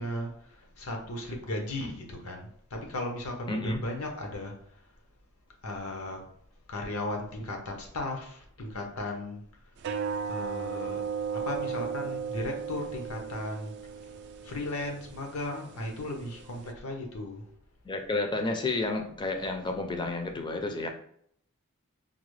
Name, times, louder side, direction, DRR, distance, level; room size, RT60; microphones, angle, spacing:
voice 1, 0.0-4.5 5.6-6.2 6.7-9.4 10.3-11.0 11.3-13.7 14.4-17.4, left 1 dB, 80° left, 2 dB, 0.8 m, -36 dB
voice 2, 3.5-3.8 17.8-20.9, left 2 dB, 20° left, 5 dB, 0.4 m, -31 dB
sound 1, 9.8-16.7, right 6 dB, 55° right, 0.3 m, -36 dB
3.8 x 2.1 x 3.1 m, 0.65 s
head